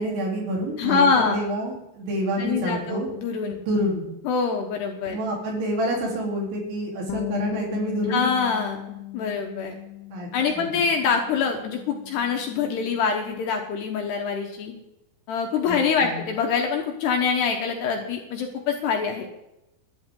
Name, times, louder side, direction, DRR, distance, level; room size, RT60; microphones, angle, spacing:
voice 1, 0.0-3.1 3.6-4.0 5.1-8.3 10.1-10.3 10.6-10.7 15.7-16.2, right 1 dB, 70° right, -2 dB, 6.1 m, -28 dB
voice 2, 0.8-1.4 2.4-3.6 4.2-5.2 8.1-9.8 10.3-14.7 15.3-19.3, left 6 dB, 70° left, 2 dB, 3.0 m, -25 dB
Bass guitar, 7.1-13.3, left 19 dB, 85° left, 3.3 m, -38 dB
21.5 x 12.0 x 3.9 m, 0.88 s
omnidirectional pair, 5.6 m